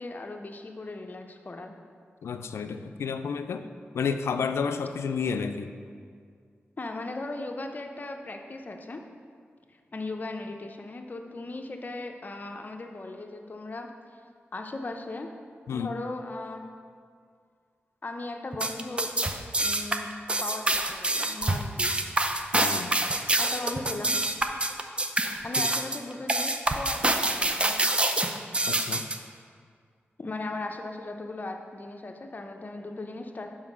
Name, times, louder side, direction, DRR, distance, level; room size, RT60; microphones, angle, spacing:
voice 1, 0.0-1.7 6.8-9.0 9.9-13.9 14.5-15.3 15.7-16.7 18.0-19.1 19.6-20.1 20.4-22.0 23.4-24.2 25.4-27.8 30.2-33.5, left 2 dB, 40° left, 4 dB, 0.7 m, -37 dB
voice 2, 2.2-3.7 3.9-5.7 15.7-15.9 22.5-23.0 28.7-29.1, left 6 dB, 85° left, 8 dB, 0.3 m, -31 dB
sound 1, 18.5-29.2, right 2 dB, 25° right, 0.5 m, -26 dB
5.6 x 4.8 x 6.2 m, 2.1 s
cardioid pair, 60°, 4 cm